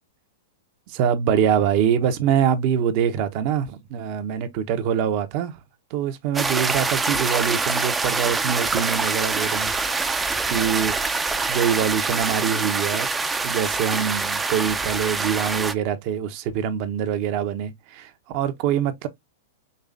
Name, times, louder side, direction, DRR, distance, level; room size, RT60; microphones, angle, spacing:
voice 1, 0.9-5.6 5.9-9.7 10.1-11.0 11.5-13.1 13.4-19.1, right 8 dB, 50° right, 0.9 m, -24 dB
sound 1, 6.3-15.7, right 4 dB, 10° right, 0.5 m, -25 dB
5.4 x 3.2 x 2.5 m
hypercardioid pair, 120°, 0 cm